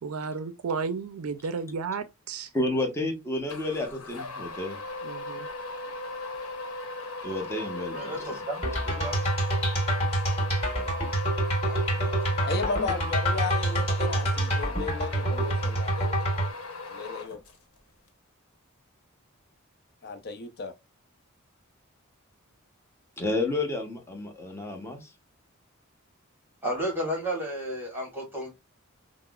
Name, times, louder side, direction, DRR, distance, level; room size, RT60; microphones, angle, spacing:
voice 1, 0.0-2.5 5.0-5.5, right 5 dB, 75° right, 0.4 m, -33 dB
voice 2, 2.5-4.8 7.2-8.4 23.2-25.1, left 2 dB, 10° left, 0.8 m, -31 dB
sound 1, 3.5-17.8, left 2 dB, 85° left, 0.9 m, -38 dB
voice 3, 7.9-9.2 11.6-12.3 26.6-28.5, right 1 dB, 10° right, 1.2 m, -33 dB
sound 2, 8.6-16.5, right 1 dB, 30° left, 1.8 m, -27 dB
voice 4, 12.5-16.5 16.9-17.4 20.0-20.7, left 4 dB, 50° left, 0.6 m, -34 dB
5.5 x 2.0 x 2.3 m
head